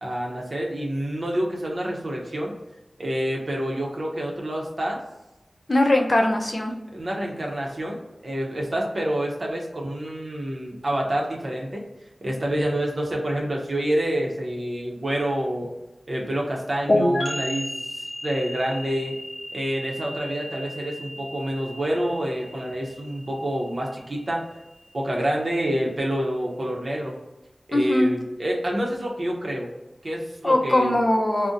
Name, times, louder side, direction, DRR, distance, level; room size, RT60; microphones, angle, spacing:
voice 1, 0.0-2.5 3.0-5.0 6.9-11.8 12.2-15.7 16.1-19.2 19.5-24.4 24.9-27.2 27.7-29.7 30.0-31.0, right 1 dB, 50° right, -1 dB, 0.7 m, -27 dB
voice 2, 5.7-6.7 27.7-28.1 30.4-31.5, left 1 dB, 40° left, 2 dB, 0.5 m, -20 dB
sound 1, 16.9-24.4, left 1 dB, 90° left, 0.7 m, -30 dB
2.6 x 2.1 x 3.7 m, 0.97 s
wide cardioid pair, 75°, 0 cm